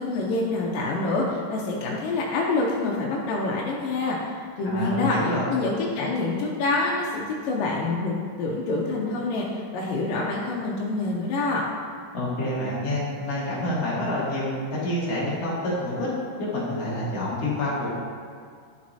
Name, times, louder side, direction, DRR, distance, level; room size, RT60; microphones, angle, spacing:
voice 1, 0.0-4.2 4.6-11.6, left 2 dB, 75° left, -3 dB, 2.2 m, -26 dB
voice 2, 4.6-5.5 12.1-16.1 16.4-17.9, left 1 dB, 50° left, -7 dB, 2.2 m, -27 dB
10.5 x 6.4 x 2.7 m, 2.1 s
omnidirectional pair, 4.5 m